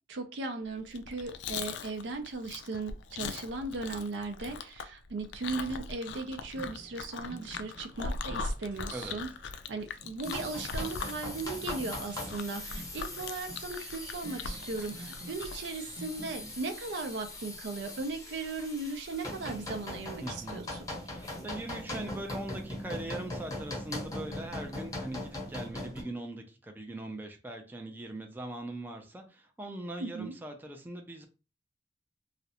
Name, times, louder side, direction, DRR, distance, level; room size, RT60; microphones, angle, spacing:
voice 1, 0.1-9.3 9.7-20.9 30.0-30.3, right 3 dB, 80° right, 6 dB, 0.5 m, -37 dB
Chewing mastication, 0.8-15.7, left 4 dB, 75° left, 0.3 m, -40 dB
sound 1, 6.0-16.6, right 1 dB, 45° right, 0.7 m, -51 dB
sound 2, 10.2-26.0, left 1 dB, 20° left, 0.7 m, -41 dB
voice 2, 20.2-20.6 21.0-31.2, right 1 dB, 10° right, 3 dB, 0.3 m, -41 dB
2.4 x 2.0 x 2.8 m, 0.32 s
head